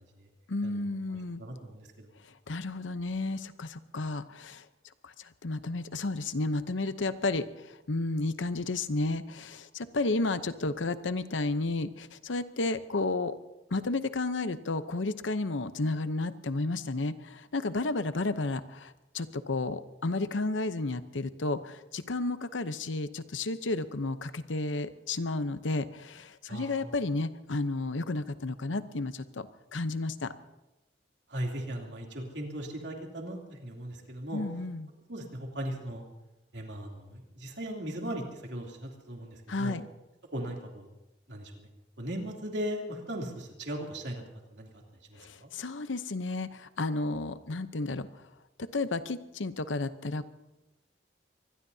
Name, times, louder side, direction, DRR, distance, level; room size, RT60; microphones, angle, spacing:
voice 1, 0.5-1.4 2.2-4.7 5.0-13.4 13.7-30.3 34.3-34.9 39.5-39.9 45.2-48.2 48.6-50.3, left 2 dB, 85° left, 12 dB, 0.8 m, -32 dB
voice 2, 1.4-2.1 26.5-26.8 31.3-34.4 35.1-36.0 36.5-38.2 38.5-39.7 40.3-40.9 41.3-41.7 42.0-44.2 44.5-44.7 45.1-45.5, right 1 dB, 65° right, 0 dB, 3.0 m, -38 dB
25.0 x 20.5 x 2.8 m, 0.98 s
head